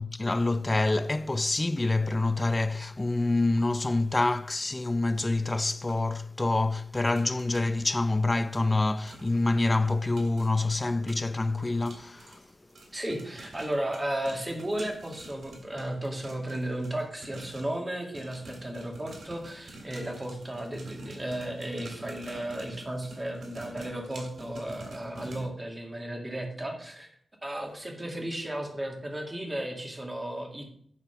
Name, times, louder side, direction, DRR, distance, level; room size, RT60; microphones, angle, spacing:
voice 1, 0.0-12.4, left 2 dB, 20° left, 0.3 m, -27 dB
popcorn popping, 5.9-6.0 6.9-7.7 8.5-8.6 9.1-9.4 9.7-17.8 18.1-25.5, right 1 dB, 85° right, 2.8 m, -47 dB
voice 2, 12.9-27.1 27.4-30.6, right 1 dB, 20° right, 1.9 m, -34 dB
11.0 x 4.0 x 5.6 m
wide cardioid pair, 130°, 0 cm